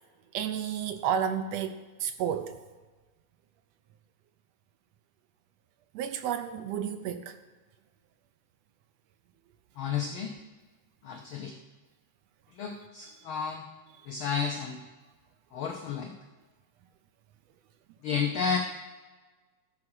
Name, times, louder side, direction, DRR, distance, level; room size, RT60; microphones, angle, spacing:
voice 1, 0.3-1.7 2.0-2.5 5.9-7.3, right 8 dB, 75° right, 9 dB, 1.6 m, -31 dB
voice 2, 9.8-10.3 11.0-11.5 12.5-13.6 14.1-14.8 15.5-16.1 18.0-18.6, left 6 dB, 80° left, 3 dB, 1.1 m, -31 dB
13.5 x 4.8 x 6.2 m, 1.3 s
omnidirectional pair, 3.3 m